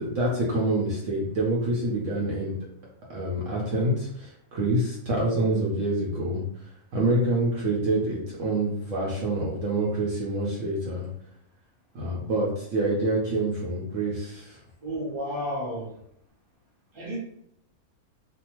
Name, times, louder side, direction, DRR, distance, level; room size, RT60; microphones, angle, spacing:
voice 1, 0.0-2.6 3.1-6.4 6.9-11.1 11.9-14.6, right 1 dB, 65° right, -4 dB, 1.0 m, -26 dB
voice 2, 14.8-15.9 16.9-17.2, equal, 25° right, -4 dB, 0.8 m, -32 dB
2.6 x 2.3 x 2.9 m, 0.73 s
omnidirectional pair, 1.6 m